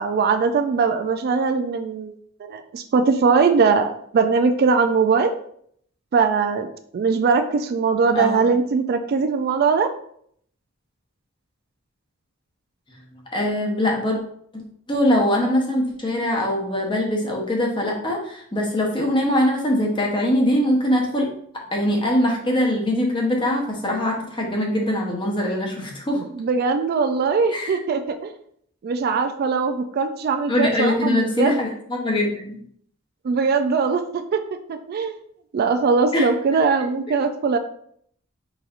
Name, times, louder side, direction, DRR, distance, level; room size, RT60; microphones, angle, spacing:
voice 1, 0.0-5.3 6.1-6.7 6.9-9.9 26.1-28.3 28.8-31.5 33.2-34.4 34.7-35.2 35.5-37.6, right 5 dB, 50° right, 8 dB, 0.3 m, -21 dB
voice 2, 8.1-8.5 13.3-14.2 14.5-21.3 21.7-26.2 27.5-27.8 30.5-32.6 36.1-36.3, left 1 dB, 25° left, -1 dB, 0.9 m, -22 dB
4.1 x 4.0 x 2.5 m, 0.66 s
head